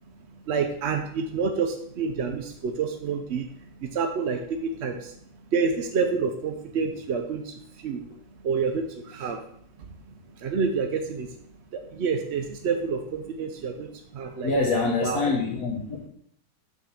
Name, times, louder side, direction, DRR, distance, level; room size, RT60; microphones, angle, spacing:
voice 1, 0.5-3.5 3.8-5.2 5.5-8.0 8.4-9.4 9.9-10.0 10.4-11.3 11.7-14.5 15.0-15.2, right 5 dB, 60° right, 4 dB, 0.7 m, -28 dB
voice 2, 14.4-16.1, left 3 dB, 55° left, -2 dB, 1.4 m, -25 dB
7.3 x 3.8 x 5.8 m, 0.67 s
omnidirectional pair, 1.9 m